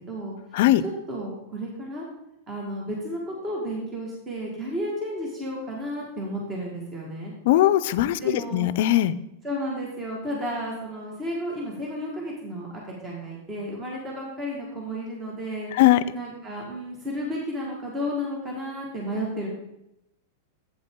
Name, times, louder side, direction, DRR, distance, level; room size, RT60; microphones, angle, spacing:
voice 1, 0.8-2.0 2.5-7.3 8.2-8.7 9.4-12.7 13.0-15.7 16.1-19.5, equal, 20° right, -2 dB, 1.8 m, -32 dB
voice 2, 7.5-8.2 8.5-9.1 15.8-16.0, left 14 dB, 65° left, 16 dB, 0.4 m, -19 dB
8.1 x 7.8 x 3.7 m, 0.86 s
supercardioid pair, 135°, 0 cm